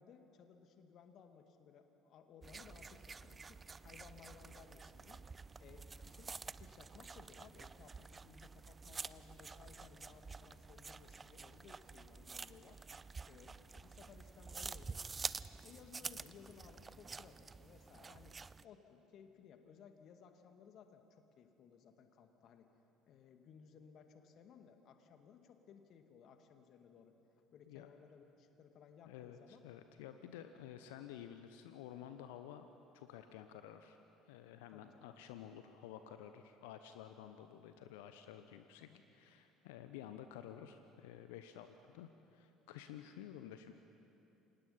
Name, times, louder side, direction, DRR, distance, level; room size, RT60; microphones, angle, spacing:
voice 1, 0.0-5.3 5.6-12.8 13.2-15.4 15.6-18.4 18.6-22.7 23.1-27.2 27.5-29.6 34.7-35.1 38.8-39.1, left 7 dB, 50° left, 6 dB, 2.1 m, -60 dB
sound 1, 2.4-18.6, right 4 dB, 25° right, 0.6 m, -49 dB
voice 2, 29.1-32.7 32.9-34.0 34.3-43.7, left 10 dB, 70° left, 9 dB, 0.9 m, -52 dB
29.0 x 26.0 x 5.7 m, 2.9 s
figure-of-eight pair, 60°, 0 cm